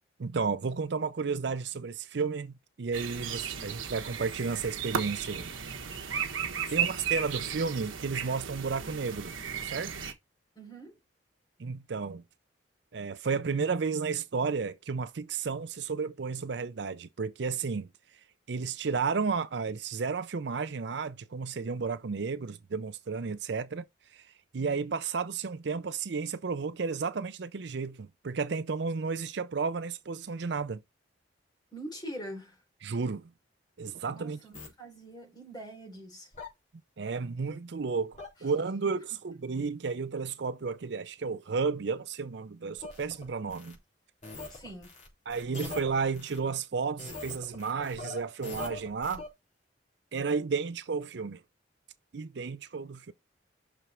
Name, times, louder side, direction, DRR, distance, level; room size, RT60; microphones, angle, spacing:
voice 1, 0.2-5.5 6.7-9.3 9.6-10.0 11.6-12.2 12.9-17.9 18.5-23.9 24.1-30.8 32.8-33.3 33.8-34.4 37.0-43.8 45.3-49.2 50.1-51.4 52.1-53.1, right 5 dB, 60° right, 0.5 m, -32 dB
sound 1, 2.9-10.1, right 7 dB, 85° right, 1.3 m, -35 dB
voice 2, 6.8-7.1 10.6-11.0 31.7-32.6 34.1-36.3 38.8-38.9 44.5-44.9, right 1 dB, 20° left, 4.0 m, -44 dB
sound 2, 34.5-34.7 36.3-36.5 38.1-38.3 42.8-43.8 44.2-46.4 47.0-49.3, left 3 dB, 35° left, 3.6 m, -43 dB
6.0 x 5.1 x 4.4 m
head